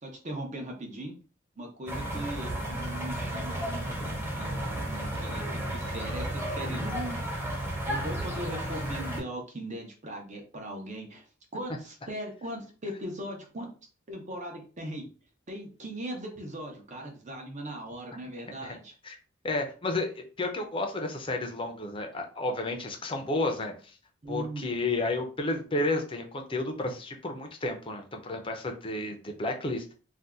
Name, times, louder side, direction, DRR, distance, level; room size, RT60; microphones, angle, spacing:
voice 1, 0.0-1.1 1.6-7.3 7.6-11.3 11.5-13.7 14.1-15.1 15.5-18.9 24.2-24.7, right 1 dB, 40° right, 2 dB, 0.8 m, -39 dB
sound 1, 1.9-9.2, right 1 dB, 15° right, 1.0 m, -33 dB
voice 2, 19.4-24.0 24.3-29.9, left 2 dB, 25° left, 4 dB, 0.6 m, -32 dB
2.7 x 2.3 x 3.5 m, 0.37 s
head